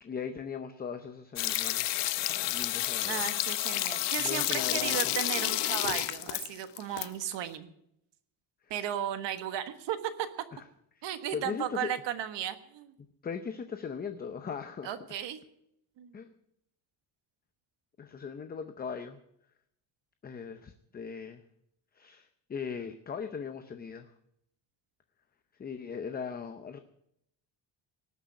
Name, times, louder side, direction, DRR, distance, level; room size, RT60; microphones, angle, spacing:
voice 1, 0.0-3.2 4.2-5.1 11.3-11.9 13.2-14.9 16.1-16.3 18.0-19.2 20.2-21.4 21.9-24.1 25.6-26.8, left 6 dB, 20° left, 8 dB, 0.6 m, -39 dB
sound 1, 1.4-7.1 7.3-7.4, left 16 dB, 70° left, 0.8 m, -30 dB
voice 2, 3.1-7.7 8.7-10.3 11.0-12.9 14.8-15.4 16.0-16.1, right 10 dB, 70° right, 10 dB, 1.5 m, -35 dB
19.0 x 6.4 x 9.3 m, 0.75 s
cardioid pair, 160°, 45 cm